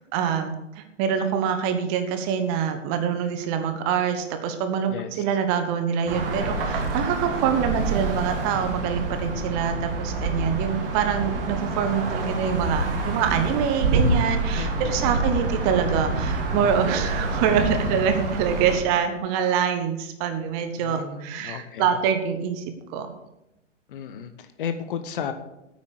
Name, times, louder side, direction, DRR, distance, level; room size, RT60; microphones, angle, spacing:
voice 1, 0.1-22.6 22.9-23.1, right 7 dB, 30° right, 8 dB, 1.3 m, -25 dB
voice 2, 4.9-5.2 14.5-15.5 20.8-21.9 23.9-25.3, left 7 dB, 45° left, 10 dB, 1.1 m, -34 dB
sound 1, 6.1-18.8, right 3 dB, 45° right, 2.3 m, -27 dB
9.5 x 8.6 x 6.6 m, 0.90 s
figure-of-eight pair, 110°, 37 cm